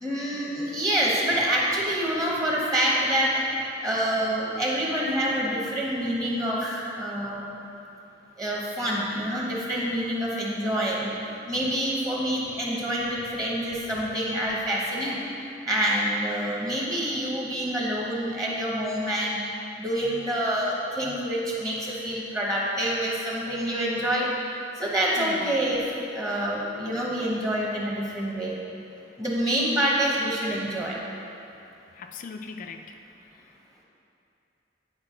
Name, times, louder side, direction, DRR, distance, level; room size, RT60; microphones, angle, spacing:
voice 1, 0.0-3.4 3.8-7.5 8.4-11.1 11.5-15.2 15.7-19.4 19.8-24.3 24.8-25.8 26.1-28.6 29.2-30.9, right 1 dB, 20° right, -4 dB, 0.9 m, -27 dB
voice 2, 25.2-25.5 31.9-33.0 33.3-33.4, left 4 dB, 45° left, 5 dB, 0.3 m, -41 dB
9.3 x 4.7 x 3.7 m, 2.7 s
head